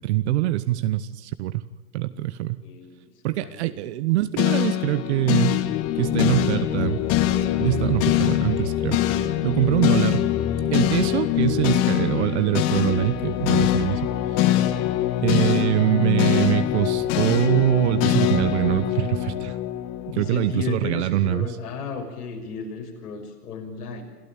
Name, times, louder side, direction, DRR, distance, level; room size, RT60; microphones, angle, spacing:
voice 1, 0.0-1.6 1.9-2.6 3.2-5.6 6.0-7.0 7.6-9.0 9.4-10.3 10.7-14.0 14.3-14.4 15.2-19.6 20.0-21.6, right 14 dB, 45° right, 13 dB, 1.0 m, -23 dB
voice 2, 2.6-2.9 3.4-3.8 20.1-24.0, left 6 dB, 70° left, 2 dB, 6.4 m, -34 dB
sound 1, 4.4-20.6, left 12 dB, 30° left, 1.4 m, -23 dB
27.0 x 13.5 x 8.8 m, 1.3 s
hypercardioid pair, 125°, 47 cm